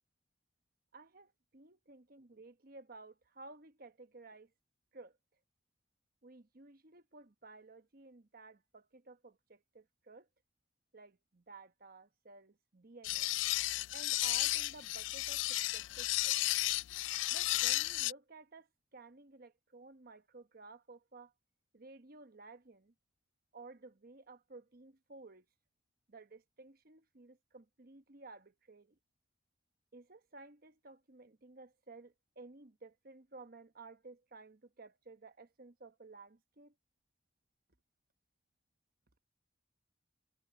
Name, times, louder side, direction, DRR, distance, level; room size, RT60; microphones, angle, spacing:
voice 1, 0.9-4.5 4.9-5.2 6.2-10.3 10.9-13.3 13.9-16.4 17.3-21.3 21.7-22.9 23.5-25.5 26.1-29.0 29.9-36.7, right 3 dB, 55° right, 1.1 m, -55 dB
sound 1, 13.0-18.1, left 18 dB, 85° left, 0.3 m, -33 dB
head